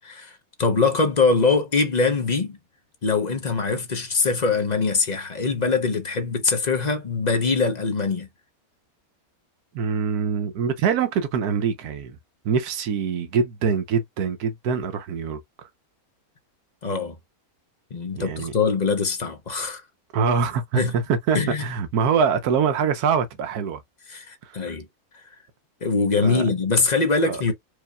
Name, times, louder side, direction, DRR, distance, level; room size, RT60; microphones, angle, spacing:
voice 1, 0.0-2.6 3.0-8.3 16.8-17.1 17.9-19.8 20.7-20.9 21.3-21.6 24.1-24.9 25.8-27.5, left 4 dB, 35° left, 0.7 m, -23 dB
voice 2, 9.7-12.2 12.4-15.7 18.1-18.5 20.1-23.8 24.4-24.6 26.2-26.5 27.2-27.4, right 6 dB, 85° right, 1.2 m, -24 dB
4.7 x 2.7 x 2.3 m
omnidirectional pair, 1.6 m